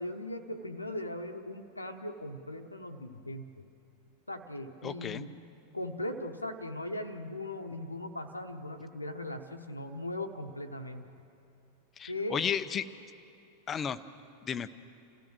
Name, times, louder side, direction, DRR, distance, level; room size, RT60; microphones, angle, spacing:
voice 1, 0.0-3.5 4.3-5.3 5.7-11.1 12.1-12.4, left 1 dB, 85° left, 6 dB, 1.0 m, -39 dB
voice 2, 4.8-5.3 12.0-12.8 13.7-14.0 14.4-14.7, left 7 dB, 25° left, 13 dB, 0.7 m, -33 dB
28.0 x 15.5 x 6.3 m, 2.7 s
figure-of-eight pair, 90°, 0 cm